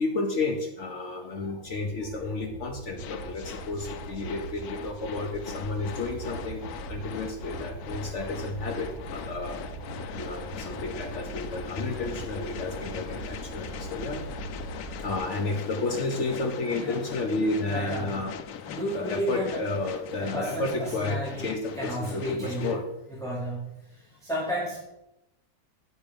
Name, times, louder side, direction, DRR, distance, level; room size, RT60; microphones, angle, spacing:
voice 1, 0.0-6.6 6.9-9.5 10.1-14.2 15.0-18.3 18.9-22.8, left 3 dB, 55° left, 3 dB, 1.0 m, -31 dB
sound 1, 1.6-15.2, right 3 dB, 30° right, 1.3 m, -41 dB
sound 2, 3.0-22.8, left 8 dB, 80° left, 1.1 m, -40 dB
voice 2, 17.7-18.2 18.7-19.6 20.2-21.5 21.7-22.8 23.1-24.8, right 1 dB, ahead, -7 dB, 1.8 m, -33 dB
8.1 x 5.4 x 5.2 m, 0.89 s
omnidirectional pair, 1.6 m